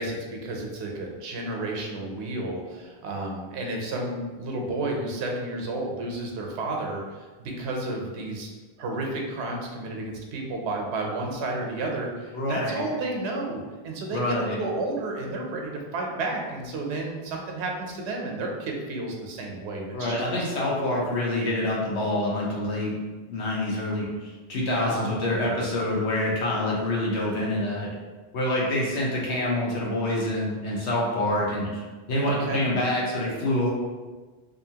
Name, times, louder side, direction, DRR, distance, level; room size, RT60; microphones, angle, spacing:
voice 1, 0.0-8.5 8.8-20.5 24.8-25.1 32.3-32.6, right 2 dB, 90° right, 1 dB, 0.9 m, -31 dB
voice 2, 12.3-12.8 14.1-14.6 19.9-22.9 23.3-24.1 24.5-27.9 28.3-33.7, left 1 dB, 90° left, -4 dB, 1.1 m, -26 dB
2.7 x 2.5 x 2.7 m, 1.3 s
omnidirectional pair, 1.1 m